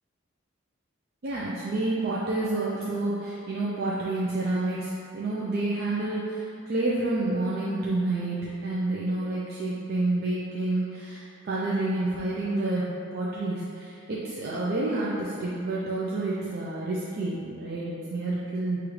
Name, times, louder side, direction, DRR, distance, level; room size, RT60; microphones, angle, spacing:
voice 1, 1.2-18.8, right 2 dB, 45° right, -7 dB, 0.4 m, -29 dB
6.5 x 2.4 x 3.1 m, 2.6 s
head